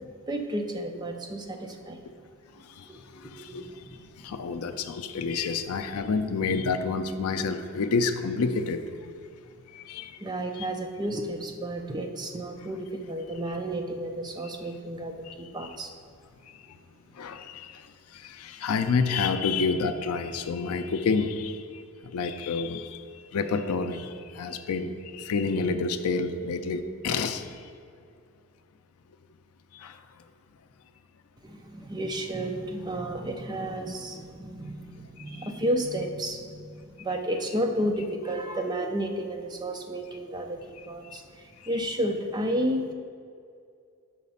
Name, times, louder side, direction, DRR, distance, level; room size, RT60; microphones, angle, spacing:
voice 1, 0.3-2.0 2.9-4.0 5.3-5.4 10.2-15.9 31.4-42.9, right 1 dB, 20° right, 3 dB, 0.4 m, -32 dB
voice 2, 2.6-2.9 3.1-9.1 9.7-10.2 10.6-10.7 15.2-15.7 17.1-17.9 18.1-23.0 23.3-27.7 29.7-30.0 35.4-35.5 41.1-41.2, left 4 dB, 80° left, 9 dB, 0.4 m, -29 dB
5.9 x 4.2 x 5.4 m, 2.4 s
head